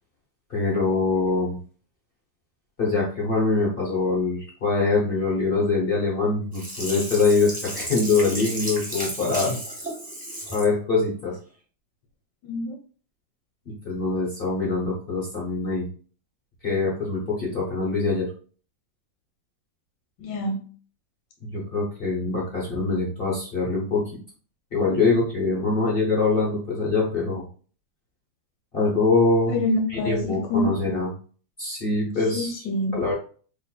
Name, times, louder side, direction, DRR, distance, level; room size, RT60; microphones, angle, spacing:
voice 1, 0.5-1.6 2.8-9.6 10.5-11.4 13.7-15.9 16.6-18.3 21.4-24.0 24.7-27.4 28.7-29.6 29.9-31.1 31.6-32.6 32.9-33.1, left 3 dB, 45° left, -4 dB, 0.7 m, -24 dB
Sink (filling or washing), 6.5-10.7 11.2-11.3, right 1 dB, 5° right, 0.8 m, -33 dB
voice 2, 12.4-12.7 20.2-20.6 29.5-30.7 32.3-33.0, left 1 dB, 70° left, 2 dB, 1.2 m, -26 dB
4.3 x 3.1 x 2.3 m, 0.41 s
omnidirectional pair, 2.1 m